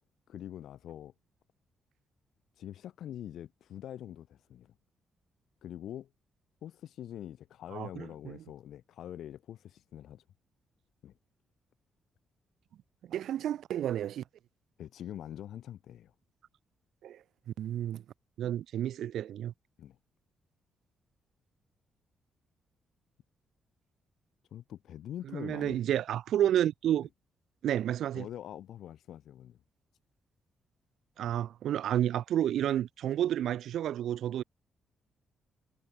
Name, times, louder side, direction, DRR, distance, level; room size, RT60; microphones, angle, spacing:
voice 1, 0.3-1.1 2.6-4.7 5.6-6.1 6.6-10.2 11.0-11.1 14.8-16.1 19.8-20.0 24.5-25.8 28.1-29.6, left 11 dB, 75° left, 1.3 m, -44 dB
voice 2, 7.7-8.4 13.0-14.2 17.0-17.2 17.6-18.0 18.4-19.5 25.3-27.1 27.6-28.3 31.2-34.4, right 11 dB, 80° right, 0.4 m, -31 dB
cardioid pair, 70°, 0 cm